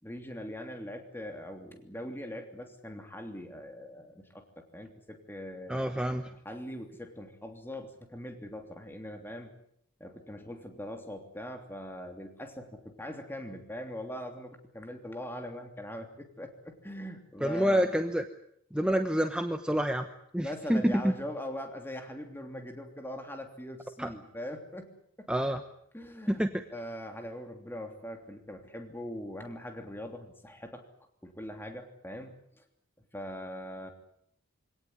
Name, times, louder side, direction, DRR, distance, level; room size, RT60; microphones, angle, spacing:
voice 1, 0.0-5.8 6.3-9.5 10.0-17.9 20.4-24.9 25.2-25.3 25.9-26.4 26.7-30.8 31.2-32.6 33.1-33.9, equal, 10° left, 4 dB, 3.0 m, -41 dB
voice 2, 5.7-6.3 17.4-18.2 18.7-20.1 20.3-21.0 24.0-24.1 25.3-25.6 26.3-26.6, equal, 5° right, 6 dB, 1.1 m, -28 dB
25.0 x 18.0 x 9.6 m, 0.71 s
head